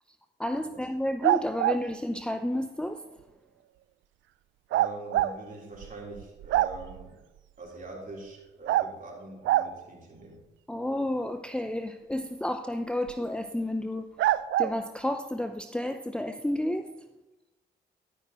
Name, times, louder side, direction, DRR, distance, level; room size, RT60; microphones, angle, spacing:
voice 1, 0.4-3.0 10.7-14.1 14.6-16.8, left 1 dB, 5° left, 0.6 m, -31 dB
sound 1, 1.2-1.8 4.7-5.3 5.8-5.9 6.2-7.0 8.7-8.9 9.5-9.7 13.1-13.2 14.2-14.7, right 14 dB, 70° right, 0.4 m, -24 dB
voice 2, 4.7-7.2 7.6-10.4, right 2 dB, 40° right, 3.9 m, -43 dB
12.5 x 10.5 x 3.1 m
supercardioid pair, 55°, 21 cm